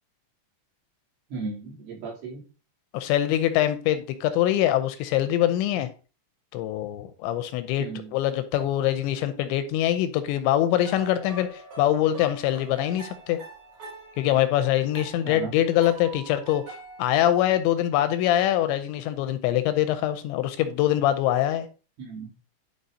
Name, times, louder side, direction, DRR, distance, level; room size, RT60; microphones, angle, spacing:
voice 1, 1.3-2.4 7.8-8.1 15.2-15.5 22.0-22.3, right 4 dB, 80° right, -5 dB, 5.4 m, -35 dB
voice 2, 2.9-5.9 6.5-13.4 14.2-21.7, left 12 dB, 85° left, 10 dB, 2.8 m, -24 dB
sound 1, 10.8-17.0, right 3 dB, 50° right, 4.4 m, -44 dB
11.5 x 5.2 x 2.7 m, 0.36 s
omnidirectional pair, 5.4 m